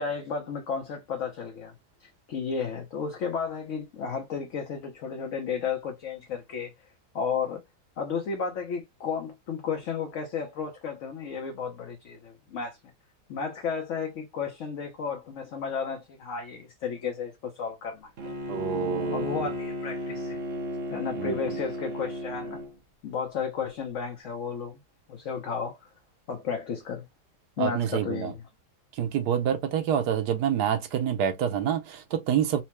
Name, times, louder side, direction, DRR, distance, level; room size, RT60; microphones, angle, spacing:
voice 1, 0.0-1.7 2.0-6.7 7.1-7.6 8.0-12.8 13.3-18.1 19.1-20.4 20.9-22.6 23.0-24.8 25.1-25.9 26.3-27.1 27.6-28.4, left 6 dB, 60° left, 1.0 m, -33 dB
Bowed string instrument, 18.2-22.7, left 1 dB, 50° right, 0.9 m, -34 dB
voice 2, 18.5-19.5 21.2-21.3 27.6-28.3 28.9-32.6, right 9 dB, 80° right, 1.3 m, -27 dB
4.4 x 2.1 x 2.9 m
omnidirectional pair, 1.7 m